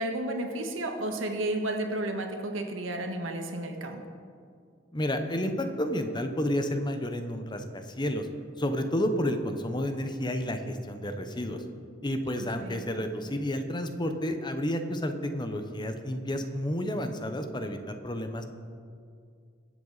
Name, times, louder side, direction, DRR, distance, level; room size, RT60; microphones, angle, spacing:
voice 1, 0.0-4.0 12.6-12.8, right 1 dB, 90° right, 4 dB, 1.5 m, -32 dB
voice 2, 4.9-8.3 8.6-11.6 12.0-18.4, equal, 25° left, 7 dB, 0.8 m, -31 dB
20.5 x 7.9 x 4.1 m, 2.3 s
head